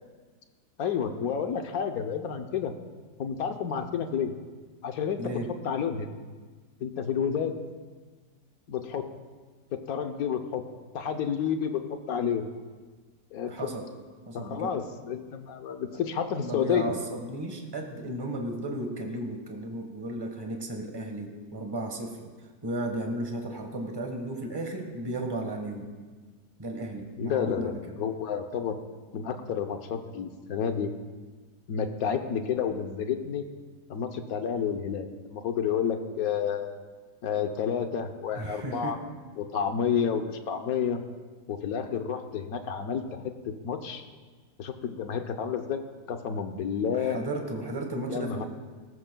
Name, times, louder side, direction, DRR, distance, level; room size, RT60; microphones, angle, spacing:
voice 1, 0.8-2.7 3.2-4.3 4.8-5.4 5.6-6.1 6.8-7.6 8.7-9.1 9.7-10.6 10.9-12.4 13.3-13.7 14.3-16.9 27.2-28.8 29.1-30.9 31.7-33.4 33.9-36.8 37.2-39.0 39.4-41.0 41.5-44.0 44.6-45.8 46.1-47.2 48.1-48.5, left 7 dB, 65° left, 7 dB, 1.2 m, -30 dB
voice 2, 5.2-5.5 13.5-13.9 14.3-14.8 16.4-22.3 22.6-25.9 26.6-28.0 38.3-39.0 46.9-48.5, right 1 dB, 15° right, 3 dB, 1.2 m, -34 dB
18.5 x 14.5 x 2.3 m, 1.4 s
omnidirectional pair, 1.8 m